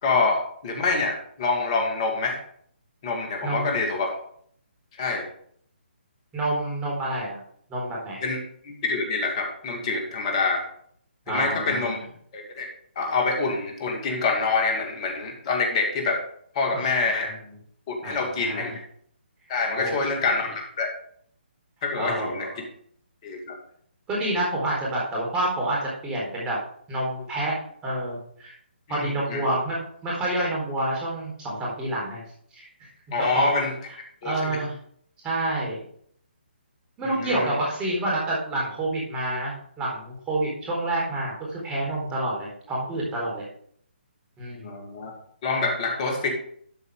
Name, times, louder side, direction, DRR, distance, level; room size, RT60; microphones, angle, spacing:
voice 1, 0.0-2.4 3.0-4.1 5.0-5.3 8.2-8.4 8.6-10.6 11.3-12.0 12.3-12.7 13.0-16.2 16.5-17.3 17.9-18.7 19.5-20.5 20.8-20.9 21.8-22.5 23.2-23.6 28.9-29.4 33.1-33.7 34.2-34.6 37.1-37.6 44.6-45.1 45.4-46.3, left 4 dB, 35° left, 2 dB, 2.5 m, -26 dB
voice 2, 3.4-3.7 6.3-7.4 7.7-8.2 11.3-11.9 16.7-16.9 18.0-18.7 19.7-20.3 22.0-22.6 24.1-26.6 26.9-27.5 27.8-28.5 28.9-32.2 32.5-32.9 33.3-33.6 34.2-34.7 35.2-35.8 37.0-43.4 44.4-44.7, right 1 dB, 15° right, -4 dB, 4.0 m, -28 dB
12.5 x 5.4 x 4.9 m, 0.63 s
figure-of-eight pair, 140°, 6 cm